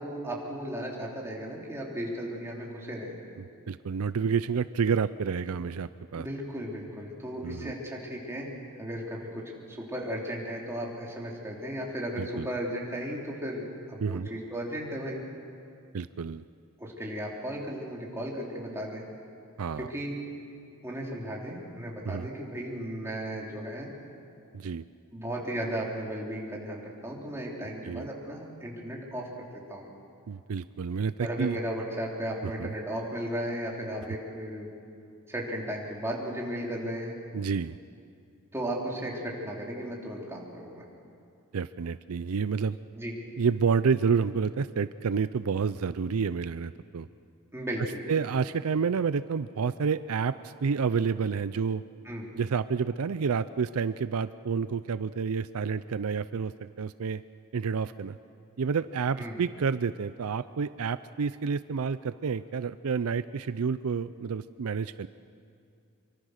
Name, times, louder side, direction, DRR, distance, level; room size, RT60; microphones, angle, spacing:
voice 1, 0.0-3.2 6.2-8.5 8.8-15.2 16.8-19.0 19.8-20.2 20.8-23.9 25.1-29.9 31.2-34.7 35.3-37.1 38.5-40.8 42.9-43.2 47.5-48.0 52.0-52.3 59.2-59.4, equal, 10° right, -3 dB, 3.5 m, -35 dB
voice 2, 3.7-6.3 7.4-7.7 12.2-12.5 14.0-14.3 15.9-16.4 19.6-19.9 22.1-22.3 24.5-24.8 27.8-28.1 30.3-31.6 32.4-32.7 37.3-37.8 41.5-42.8 43.4-47.1 48.1-51.8 52.4-57.2 57.5-58.2 58.6-65.1, right 5 dB, 70° right, 14 dB, 0.5 m, -29 dB
25.5 x 24.0 x 6.5 m, 2.5 s
head